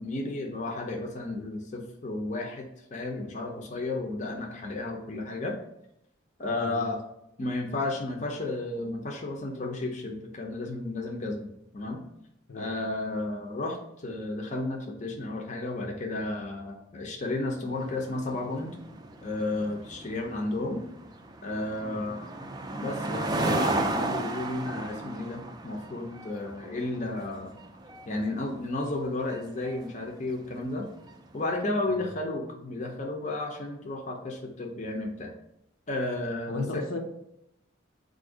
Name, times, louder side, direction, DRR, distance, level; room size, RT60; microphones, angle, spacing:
voice 1, 0.0-5.6 6.4-7.0 7.4-12.0 12.5-18.7 19.2-20.8 21.4-22.3 22.7-27.6 28.1-30.9 31.3-35.3 35.9-36.8, left 2 dB, 40° left, 1 dB, 0.6 m, -33 dB
voice 2, 6.5-6.8 12.5-12.7 21.8-22.0 31.9-32.1 36.5-37.0, left 3 dB, 75° left, 2 dB, 0.7 m, -36 dB
sound 1, 17.7-31.3, right 2 dB, 20° right, 0.3 m, -35 dB
4.2 x 2.6 x 4.8 m, 0.79 s
head